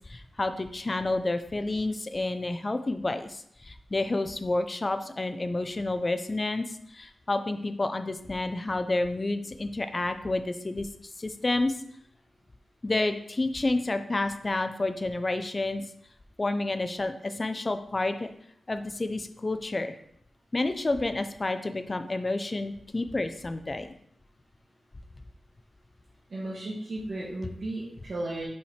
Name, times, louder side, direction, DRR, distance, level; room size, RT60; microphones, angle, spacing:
voice 1, 0.1-6.7 6.9-10.9 11.2-11.7 12.8-15.8 16.4-18.3 18.7-20.0 20.5-23.9, left 2 dB, 25° left, 9 dB, 0.5 m, -29 dB
voice 2, 26.3-28.5, right 1 dB, 45° right, -6 dB, 1.3 m, -34 dB
5.5 x 4.9 x 4.3 m, 0.72 s
wide cardioid pair, 145°, 0 cm